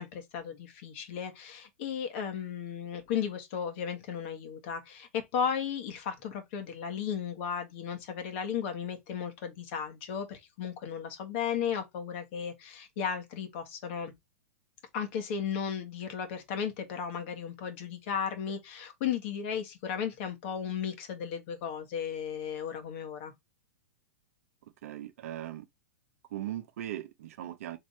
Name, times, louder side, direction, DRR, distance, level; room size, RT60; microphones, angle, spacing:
voice 1, 0.0-14.1 14.9-23.3, left 7 dB, 50° left, 1.6 m, -35 dB
voice 2, 24.6-25.7 26.3-27.8, right 13 dB, 65° right, 0.7 m, -39 dB
3.7 x 3.5 x 4.2 m
hypercardioid pair, 135°, 8 cm